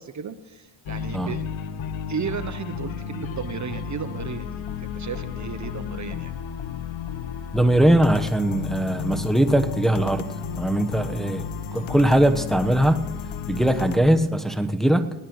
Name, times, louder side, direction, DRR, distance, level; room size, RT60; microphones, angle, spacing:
voice 1, 0.0-1.5 2.1-6.3, right 7 dB, 40° right, 11 dB, 0.9 m, -34 dB
sound 1, 0.9-14.0, left 7 dB, 75° left, 1.2 m, -33 dB
voice 2, 7.5-10.3 10.6-13.1 13.5-15.1, right 1 dB, ahead, 6 dB, 1.1 m, -21 dB
21.0 x 17.0 x 3.1 m, 1.2 s
supercardioid pair, 60°, 46 cm